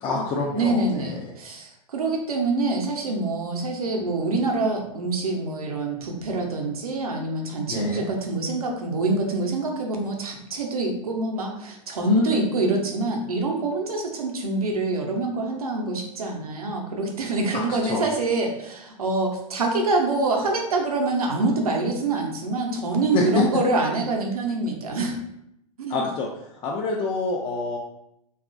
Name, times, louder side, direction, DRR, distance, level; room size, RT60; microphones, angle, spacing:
voice 1, 0.0-1.2 7.7-8.1 12.0-12.5 17.5-17.6 17.9-18.0 23.1-23.5 25.9-26.3 26.6-27.8, left 4 dB, 25° left, -2 dB, 0.4 m, -26 dB
voice 2, 0.6-25.2 25.8-26.0, right 3 dB, 80° right, 1 dB, 0.6 m, -25 dB
2.9 x 2.4 x 2.4 m, 0.80 s
hypercardioid pair, 100°, 19 cm